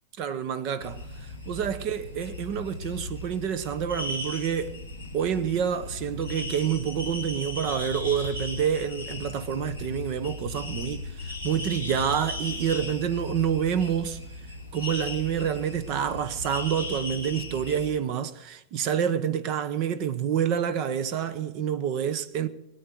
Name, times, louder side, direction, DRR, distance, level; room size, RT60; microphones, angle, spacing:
voice 1, 0.2-1.0 1.5-4.8 5.1-14.2 14.7-22.5, right 8 dB, 40° right, 0.9 m, -28 dB
sound 1, 0.8-17.9, left 2 dB, 80° right, 7.0 m, -36 dB
21.0 x 9.4 x 6.2 m
figure-of-eight pair, 90°, 0 cm